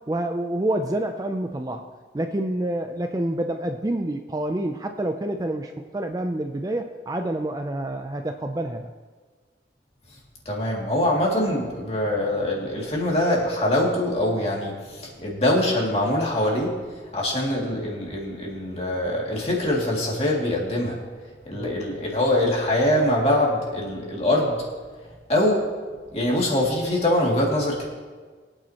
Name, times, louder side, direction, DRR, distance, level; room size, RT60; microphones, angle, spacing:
voice 1, 0.1-1.8 2.1-8.9 21.6-21.8, right 1 dB, 20° right, 5 dB, 0.4 m, -28 dB
voice 2, 10.5-16.7 17.1-21.0 21.5-24.6 25.3-25.7 26.1-27.9, left 1 dB, 35° left, -3 dB, 2.4 m, -23 dB
22.5 x 9.0 x 2.9 m, 1.5 s
head